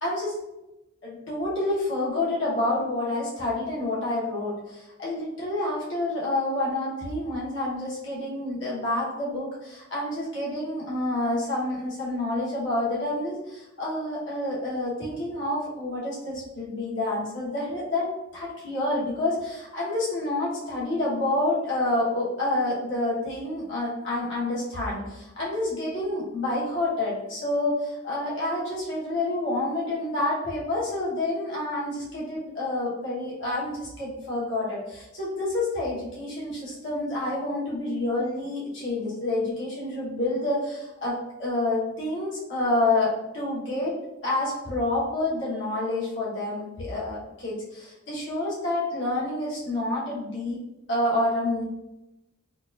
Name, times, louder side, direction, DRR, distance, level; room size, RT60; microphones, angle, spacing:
voice 1, 0.0-0.4 1.0-43.9 44.2-50.6 50.9-51.6, left 2 dB, 70° left, -6 dB, 1.2 m, -28 dB
4.5 x 2.4 x 2.5 m, 0.95 s
head